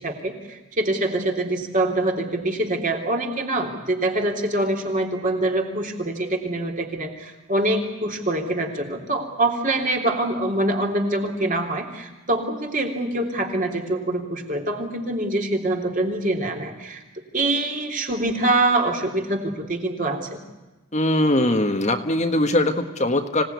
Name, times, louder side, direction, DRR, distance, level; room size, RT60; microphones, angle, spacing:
voice 1, 0.0-17.0 17.3-20.4, right 2 dB, 35° right, 2 dB, 3.3 m, -24 dB
voice 2, 20.9-23.4, left 1 dB, 30° left, 5 dB, 1.4 m, -21 dB
25.5 x 18.0 x 9.5 m, 1.1 s
head